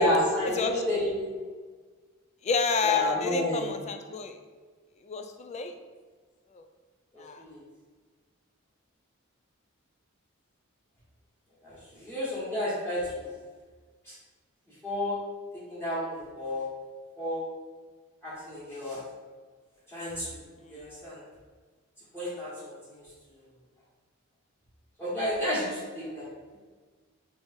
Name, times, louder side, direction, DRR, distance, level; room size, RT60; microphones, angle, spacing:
voice 1, 0.0-1.5 2.8-3.7 7.1-7.6 11.6-13.2 14.0-14.1 14.8-15.2 15.5-16.6 17.2-17.4 18.2-19.0 19.9-20.4 20.7-21.2 22.1-23.0 25.0-26.6, left 1 dB, 10° left, -9 dB, 1.4 m, -31 dB
voice 2, 2.4-4.4 5.0-5.8 6.5-6.6 7.2-7.4 20.6-20.9, left 5 dB, 30° left, 6 dB, 0.3 m, -29 dB
3.3 x 3.2 x 4.2 m, 1.4 s
head